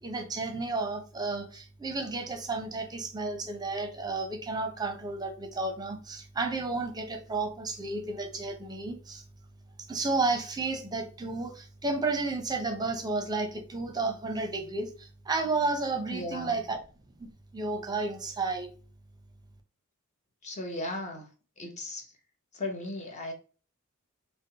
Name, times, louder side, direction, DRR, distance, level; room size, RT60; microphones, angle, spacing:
voice 1, 0.0-9.2 9.9-16.8 17.2-17.3 17.5-18.7, right 3 dB, 20° right, 0.6 m, -32 dB
voice 2, 16.1-16.6 20.4-21.3 21.6-22.1 22.5-23.3, left 1 dB, 30° left, 0.8 m, -36 dB
5.1 x 2.1 x 2.8 m
head